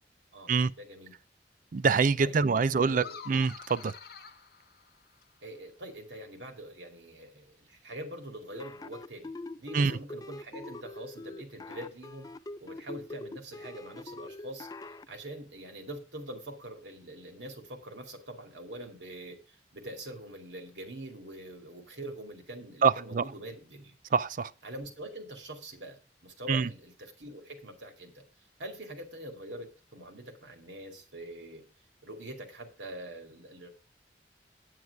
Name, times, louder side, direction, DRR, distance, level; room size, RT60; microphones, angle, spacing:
voice 1, 0.8-1.1 2.2-3.2 5.4-9.3 9.6-12.3 12.6-14.7 15.1-23.9 24.6-28.2 28.6-31.6 32.0-33.7, right 1 dB, 90° right, 2.4 m, -44 dB
voice 2, 1.7-3.9 9.7-10.0 22.8-23.2 24.1-24.5 26.5-26.7, right 5 dB, 50° right, 0.4 m, -25 dB
sound 1, 3.0-5.5, left 6 dB, 60° left, 1.2 m, -48 dB
sound 2, 8.5-15.1, left 2 dB, 20° left, 0.4 m, -43 dB
9.4 x 8.0 x 4.7 m
head